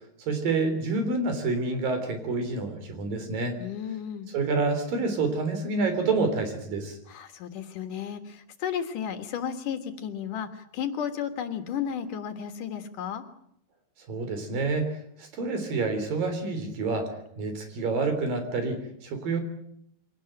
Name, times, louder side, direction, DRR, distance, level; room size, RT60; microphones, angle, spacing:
voice 1, 0.2-3.6 4.3-7.0 14.1-17.1 17.4-19.4, right 3 dB, 75° right, 8 dB, 5.3 m, -28 dB
voice 2, 3.6-4.3 7.1-13.2, left 8 dB, 70° left, 8 dB, 3.0 m, -33 dB
24.0 x 18.0 x 8.9 m, 0.71 s
omnidirectional pair, 4.0 m